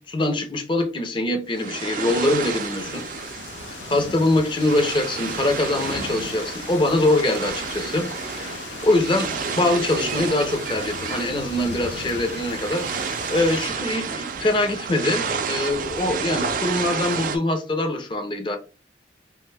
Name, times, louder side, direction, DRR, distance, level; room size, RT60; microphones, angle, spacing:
voice 1, 0.0-3.0 3.9-8.1 8.4-18.6, left 2 dB, 30° left, 0.5 m, -23 dB
sound 1, 1.5-17.4, right 5 dB, 50° right, 0.3 m, -31 dB
sound 2, 2.0-13.7, left 6 dB, 80° left, 0.3 m, -38 dB
2.5 x 2.2 x 3.2 m
head